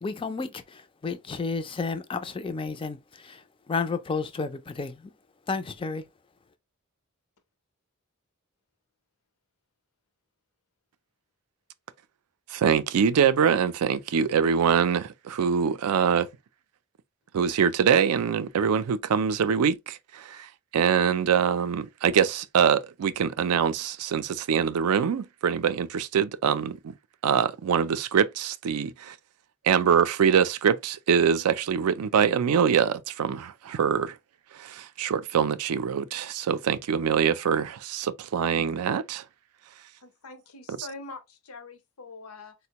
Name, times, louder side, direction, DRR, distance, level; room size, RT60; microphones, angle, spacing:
voice 1, 0.0-3.4 3.7-5.0 5.5-6.0, left 4 dB, 25° left, 0.3 m, -31 dB
voice 2, 12.5-16.3 17.3-26.8 27.2-29.1 29.6-34.1 34.6-39.2 40.7-40.8, right 7 dB, 85° right, 0.4 m, -24 dB
voice 3, 40.0-42.5, left 3 dB, 80° left, 0.8 m, -43 dB
4.2 x 2.1 x 2.8 m
head